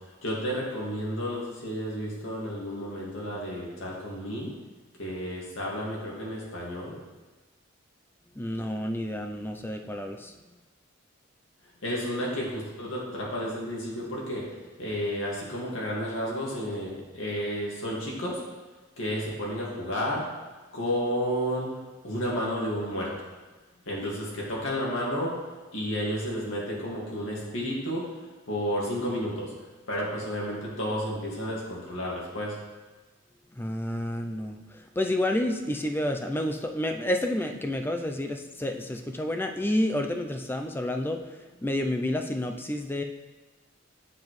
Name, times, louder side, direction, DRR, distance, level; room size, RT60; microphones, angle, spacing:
voice 1, 0.2-4.5 5.0-7.0 11.8-14.5 14.8-18.4 19.0-20.2 20.7-21.7 22.0-23.1 23.9-25.4 25.7-28.1 28.5-29.5 29.9-32.6, equal, 70° left, -4 dB, 2.0 m, -31 dB
voice 2, 8.4-10.3 33.5-43.0, left 1 dB, 10° left, 5 dB, 0.4 m, -30 dB
7.4 x 6.9 x 3.1 m, 1.3 s
head